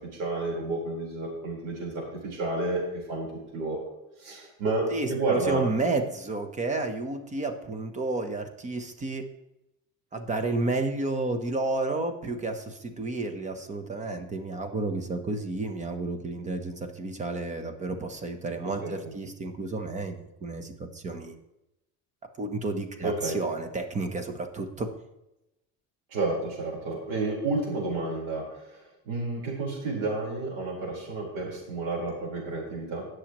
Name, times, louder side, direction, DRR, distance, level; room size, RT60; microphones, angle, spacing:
voice 1, 0.2-3.3 3.5-3.8 4.2-5.6 18.6-19.1 23.0-23.4 26.1-33.1, right 2 dB, 85° right, -2 dB, 4.5 m, -31 dB
voice 2, 4.9-9.3 10.1-21.3 22.4-24.9, right 2 dB, 20° right, 7 dB, 0.9 m, -31 dB
19.0 x 6.4 x 3.1 m, 0.90 s
cardioid pair, 155°, 32 cm